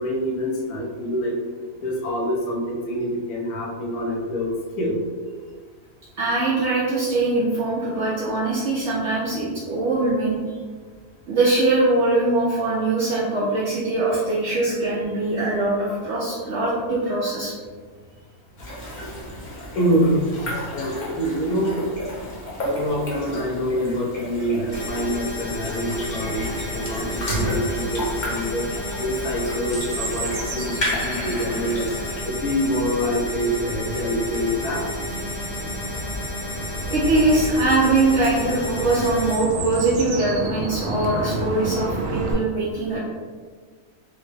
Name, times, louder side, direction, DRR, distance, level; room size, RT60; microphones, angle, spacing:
voice 1, 0.0-1.3 1.8-4.5 4.8-5.0 19.7-21.7 22.6-28.6 29.0-31.9 32.2-34.9, equal, 85° left, -2 dB, 1.3 m, -26 dB
voice 2, 6.2-10.6 11.3-17.5 36.9-43.0, right 2 dB, 60° right, -6 dB, 0.8 m, -22 dB
sound 1, 18.6-32.2, equal, 45° left, 0.6 m, -33 dB
sound 2, 24.7-39.4, left 1 dB, 65° left, 1.2 m, -32 dB
Chirp tweet, 26.1-42.3, right 2 dB, 90° right, 1.1 m, -32 dB
3.6 x 2.1 x 3.2 m, 1.5 s
omnidirectional pair, 1.6 m